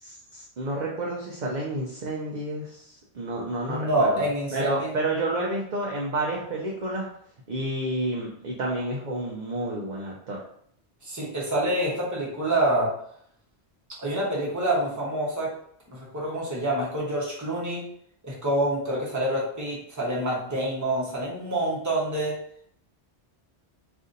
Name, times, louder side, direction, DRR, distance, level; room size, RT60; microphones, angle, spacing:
voice 1, 0.0-4.2 4.5-7.1 7.5-10.4, right 2 dB, 50° right, -3 dB, 0.6 m, -30 dB
voice 2, 3.7-4.9 11.0-12.9 14.0-15.5 15.9-17.8 18.2-22.4, right 1 dB, 20° right, -4 dB, 0.8 m, -27 dB
2.6 x 2.5 x 3.8 m, 0.67 s
omnidirectional pair, 1.1 m